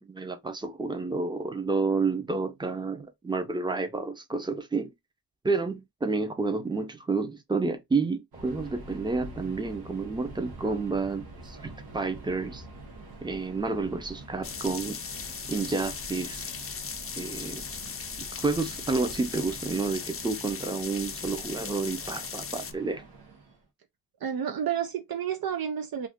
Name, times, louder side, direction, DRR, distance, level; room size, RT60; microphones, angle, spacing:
voice 1, 0.0-4.9 5.4-12.6 13.2-15.0 15.5-16.5 17.2-17.6 18.3-23.0, right 4 dB, 10° right, 0.6 m, -30 dB
Subway metro underground, 8.3-23.7, right 2 dB, 80° right, 0.9 m, -46 dB
sound 1, 14.4-22.7, left 6 dB, 35° left, 0.5 m, -38 dB
voice 2, 24.2-26.1, right 8 dB, 65° right, 0.5 m, -30 dB
2.5 x 2.4 x 3.5 m
wide cardioid pair, 85°, 38 cm